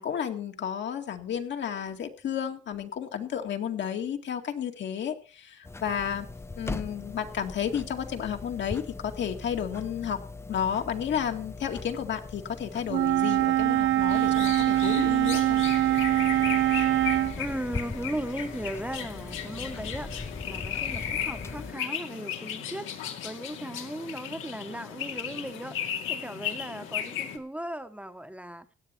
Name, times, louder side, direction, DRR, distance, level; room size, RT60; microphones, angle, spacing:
voice 1, 0.0-6.3 6.6-10.2 10.5-15.6, left 8 dB, 65° left, 4 dB, 2.1 m, -32 dB
sound 1, 5.6-21.7, left 3 dB, 15° left, 0.7 m, -40 dB
Wind instrument woodwind instrument, 12.9-17.3, right 15 dB, 75° right, 0.6 m, -23 dB
sound 2, 14.1-27.4, left 9 dB, 90° left, 2.3 m, -36 dB
voice 2, 17.4-28.7, right 1 dB, 5° right, 8 dB, 1.1 m, -37 dB
16.5 x 9.7 x 4.5 m, 0.37 s
cardioid pair, 90°, 20 cm